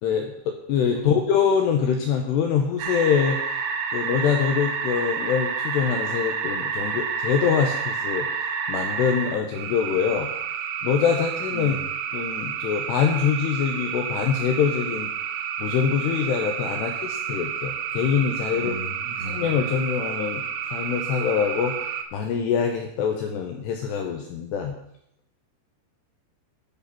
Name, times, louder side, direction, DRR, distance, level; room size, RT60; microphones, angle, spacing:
voice 1, 0.0-3.4 3.9-8.3 8.7-10.3 10.8-11.8 12.1-15.1 15.6-18.8 19.2-20.4 20.7-24.8, left 7 dB, 80° left, 3 dB, 2.5 m, -24 dB
sound 1, 2.8-22.0, right 7 dB, 85° right, 3.6 m, -30 dB
voice 2, 11.5-11.9 18.5-19.4, right 3 dB, 65° right, 0 dB, 2.8 m, -36 dB
13.0 x 6.2 x 5.7 m, 0.77 s
omnidirectional pair, 5.8 m